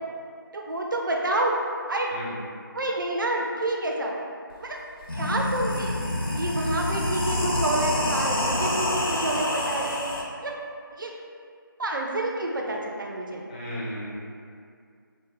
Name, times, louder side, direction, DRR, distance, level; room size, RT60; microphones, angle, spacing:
voice 1, 0.5-1.5 1.9-2.1 2.7-4.1 4.6-4.8 5.2-5.9 6.3-9.9 10.4-10.6 11.0-11.1 11.8-13.5, right 1 dB, 65° right, 0 dB, 0.4 m, -28 dB
sound 1, 4.5-4.6 5.0-10.2, left 1 dB, 85° left, 0.6 m, -27 dB
voice 2, 13.5-14.1, equal, 25° left, -9 dB, 0.4 m, -34 dB
2.1 x 2.1 x 3.2 m, 2.2 s
figure-of-eight pair, 165°, 12 cm